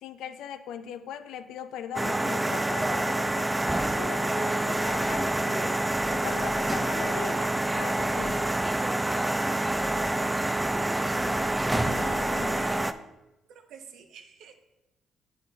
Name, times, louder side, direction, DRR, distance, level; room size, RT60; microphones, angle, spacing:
voice 1, 0.0-5.8 6.1-8.5 11.7-12.6, left 9 dB, 85° left, 11 dB, 0.4 m, -40 dB
sound 1, 2.0-12.9, right 1 dB, 10° right, 0.3 m, -27 dB
voice 2, 12.6-12.9 13.5-14.5, right 6 dB, 80° right, 5 dB, 0.7 m, -47 dB
8.6 x 6.2 x 2.3 m, 0.95 s
cardioid pair, 70°, 0 cm